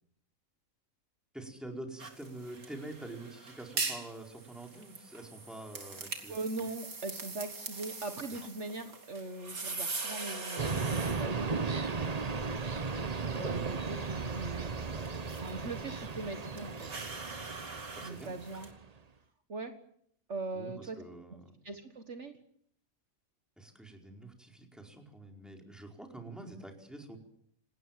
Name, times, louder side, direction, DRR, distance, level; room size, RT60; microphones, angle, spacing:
voice 1, 1.3-6.4 18.0-18.3 20.5-21.4 23.6-27.2, right 2 dB, ahead, 2 dB, 4.7 m, -46 dB
sound 1, 2.0-18.7, right 3 dB, 85° right, 3.1 m, -43 dB
voice 2, 6.3-12.3 13.4-16.9 18.0-18.7 19.5-19.7 20.3-21.0 21.6-22.4, right 3 dB, 55° right, 7 dB, 1.9 m, -41 dB
sound 2, 10.6-18.9, right 4 dB, 30° right, 1.0 m, -36 dB
28.0 x 19.5 x 7.6 m, 0.67 s
omnidirectional pair, 1.5 m